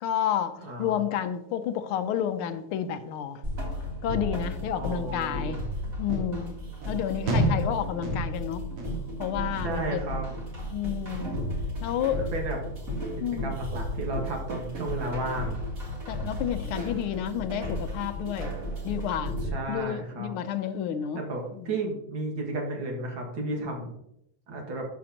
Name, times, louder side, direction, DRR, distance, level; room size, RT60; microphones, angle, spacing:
voice 1, 0.0-3.4 4.0-5.6 6.0-6.6 6.9-8.7 9.2-10.0 10.7-11.4 11.8-12.2 13.2-13.5 16.1-18.5 18.8-19.4 19.7-21.2 21.6-21.8, left 9 dB, 80° left, 10 dB, 1.5 m, -30 dB
voice 2, 0.6-1.0 4.7-5.6 7.6-7.9 9.6-10.2 12.2-12.6 13.4-15.7 19.5-20.3 21.1-23.9 24.5-24.9, right 2 dB, 65° right, 0 dB, 2.4 m, -33 dB
sound 1, 3.4-19.5, equal, 40° right, 2.2 m, -34 dB
sound 2, 6.1-6.3 6.8-7.0 7.3-7.7 8.0-8.5 8.8-9.2 9.5-9.9 10.3-10.6 11.0-11.2, equal, 90° right, 2.6 m, -29 dB
12.0 x 6.1 x 2.8 m, 0.79 s
omnidirectional pair, 2.4 m